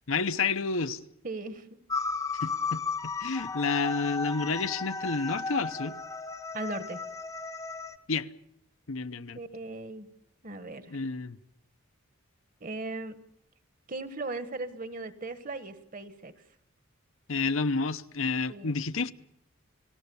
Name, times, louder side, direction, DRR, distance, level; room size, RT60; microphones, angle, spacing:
voice 1, 0.1-1.0 2.4-2.8 3.2-6.0 8.1-8.3 8.9-9.4 10.9-11.4 17.3-19.1, left 4 dB, 70° left, 0.9 m, -30 dB
voice 2, 1.2-1.7 6.5-7.0 9.3-10.1 10.4-11.0 12.6-13.2 13.9-16.3 18.5-18.7, right 2 dB, 40° right, 1.4 m, -38 dB
sound 1, 1.9-8.0, left 4 dB, 15° left, 0.8 m, -34 dB
30.0 x 18.0 x 7.1 m
head